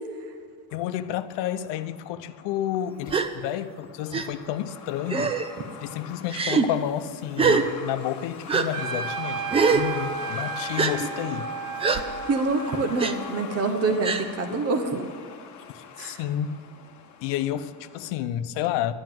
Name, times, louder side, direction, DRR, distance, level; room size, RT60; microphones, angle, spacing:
voice 1, 0.7-5.4 5.8-11.5 15.7-16.6 17.2-18.9, left 11 dB, 70° left, 10 dB, 0.9 m, -30 dB
Truck, 0.7-18.1, left 6 dB, 40° left, 1.4 m, -42 dB
Gasp, 3.1-3.3 4.1-4.3 5.1-5.5 6.3-6.7 7.4-7.6 8.5-8.7 9.5-9.9 10.8-10.9 11.8-12.0 13.0-13.1 14.0-14.2, right 5 dB, 15° right, 0.3 m, -22 dB
Trumpet, 8.7-13.4, right 7 dB, 75° right, 2.2 m, -34 dB
voice 2, 12.3-15.1 16.0-16.2, right 3 dB, 35° right, 6 dB, 1.1 m, -26 dB
11.5 x 11.0 x 7.7 m, 2.1 s
cardioid pair, 170°, 45 cm